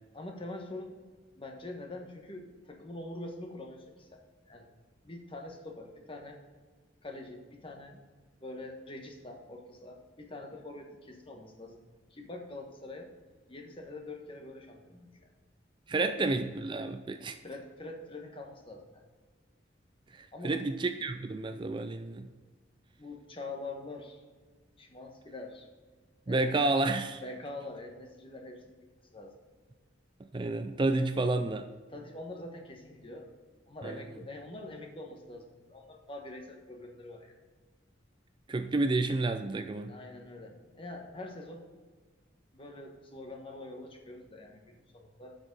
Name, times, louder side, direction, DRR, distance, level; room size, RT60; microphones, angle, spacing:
voice 1, 0.1-1.0 1.4-4.2 4.5-4.7 5.0-6.4 7.0-8.0 8.4-11.8 12.1-13.1 13.5-15.3 16.0-16.1 17.4-19.0 20.3-20.6 23.0-24.2 24.8-25.7 26.3-26.6 27.2-28.7 29.1-29.3 31.9-33.3 33.7-37.3 39.9-41.7 42.5-45.4, left 2 dB, 30° left, 2 dB, 1.3 m, -44 dB
voice 2, 15.9-17.4 20.1-22.3 26.3-27.2 30.3-31.7 33.8-34.0 38.5-39.9, right 2 dB, 25° right, 8 dB, 0.4 m, -30 dB
7.7 x 6.5 x 5.3 m, 1.4 s
head